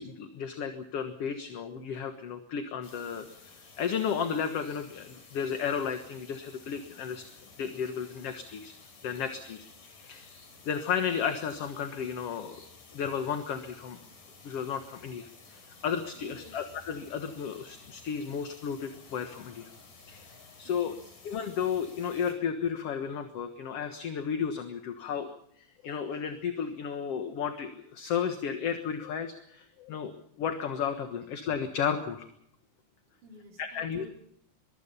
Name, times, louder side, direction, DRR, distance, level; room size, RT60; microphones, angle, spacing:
voice 1, 0.0-3.3 3.8-7.2 7.6-8.7 9.0-9.7 9.9-10.2 10.7-12.6 12.9-14.0 14.4-19.7 20.1-20.9 21.3-25.3 25.6-30.1 30.4-32.3 33.6-34.0, left 7 dB, 55° left, 7 dB, 2.2 m, -33 dB
sound 1, 2.8-22.3, left 4 dB, 90° left, 6.2 m, -54 dB
voice 2, 16.1-16.7 20.6-21.1 33.2-34.1, left 1 dB, 70° right, 2 dB, 5.5 m, -53 dB
23.5 x 23.0 x 5.6 m, 0.68 s
omnidirectional pair, 3.6 m